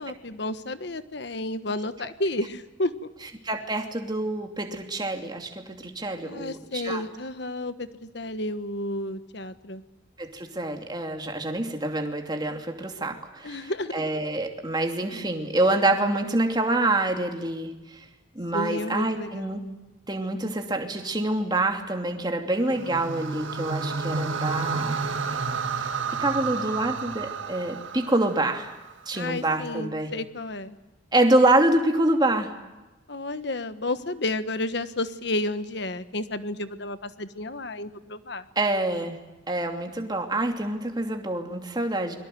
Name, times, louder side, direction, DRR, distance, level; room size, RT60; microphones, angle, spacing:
voice 1, 0.0-3.1 6.2-9.8 13.4-14.0 18.5-19.7 29.1-30.7 33.1-38.4, left 2 dB, 60° left, 11 dB, 1.3 m, -31 dB
voice 2, 3.4-7.0 10.2-17.7 18.3-19.6 20.1-25.1 25.8-25.9 26.2-28.7 29.1-30.1 31.1-32.5 38.6-39.2 39.5-42.2, right 2 dB, 20° right, 3 dB, 2.8 m, -26 dB
sound 1, 22.6-28.9, right 5 dB, 85° right, 1.7 m, -31 dB
29.0 x 23.0 x 7.8 m, 1.1 s
head